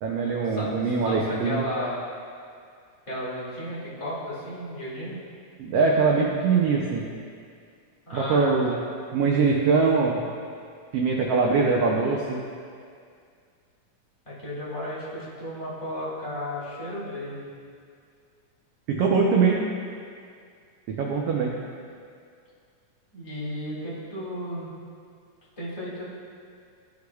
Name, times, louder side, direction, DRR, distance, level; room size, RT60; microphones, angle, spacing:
voice 1, 0.0-1.6 5.6-7.0 8.1-8.7 9.1-10.2 10.9-12.4 18.9-19.6 20.9-21.5, right 4 dB, 85° right, -2 dB, 1.3 m, -22 dB
voice 2, 1.0-2.0 3.1-5.2 8.0-8.9 14.2-17.5 23.1-24.7 25.6-26.0, equal, 15° left, -10 dB, 1.2 m, -33 dB
14.5 x 4.8 x 2.3 m, 2.2 s
omnidirectional pair, 3.5 m